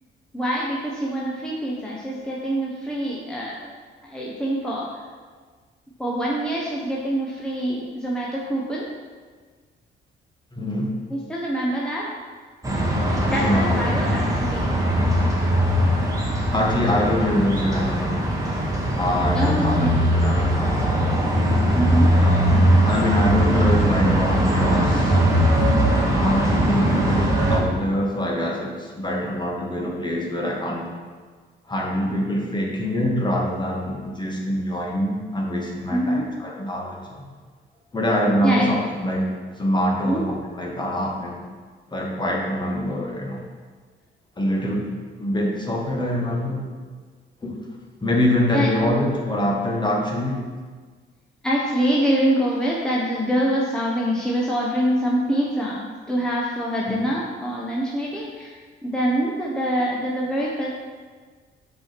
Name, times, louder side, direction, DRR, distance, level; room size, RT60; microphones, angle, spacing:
voice 1, 0.3-3.7 4.1-4.9 6.0-8.9 11.1-12.1 13.3-14.7 16.2-16.3 19.3-20.0 21.7-22.1 35.9-36.3 38.4-38.7 40.0-40.2 42.8-42.9 48.5-48.7 51.4-58.5 58.8-60.7, equal, 5° left, -5 dB, 1.2 m, -25 dB
voice 2, 10.5-10.9 13.4-14.0 16.5-18.3 19.0-21.0 22.1-22.5 22.8-25.2 25.9-30.9 31.7-37.3 37.9-41.4 41.9-43.5 44.4-44.9 45.2-46.7 47.4-47.6 48.0-50.4 56.9-57.0, left 1 dB, 20° left, -1 dB, 1.6 m, -24 dB
sound 1, 12.6-27.6, equal, 15° right, 1.7 m, -20 dB
6.1 x 4.9 x 6.0 m, 1.5 s
cardioid pair, 90°, 20 cm